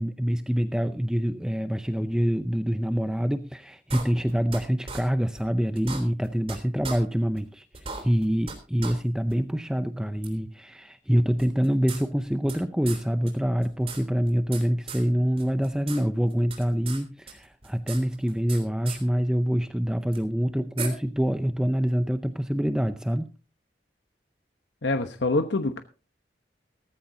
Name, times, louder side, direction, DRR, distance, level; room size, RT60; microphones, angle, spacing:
voice 1, 0.0-23.3, equal, 5° right, 9 dB, 0.5 m, -26 dB
sound 1, 3.9-4.6 4.9-5.0 5.4-5.5 5.8-6.6 6.8-7.0 7.4-7.5 7.7-8.6 8.8-8.9 9.3-9.4 10.2-10.3 11.4-12.6 12.9-13.0 13.3-13.4 13.6-14.6 14.9-15.0 15.4-16.0 16.3-17.0 17.3-18.6 18.9-19.0 20.1-20.2 20.8-20.9, right 5 dB, 30° right, 3.4 m, -37 dB
voice 2, 24.8-25.8, left 2 dB, 85° left, 7 dB, 1.1 m, -25 dB
17.5 x 14.5 x 2.8 m, 0.34 s
head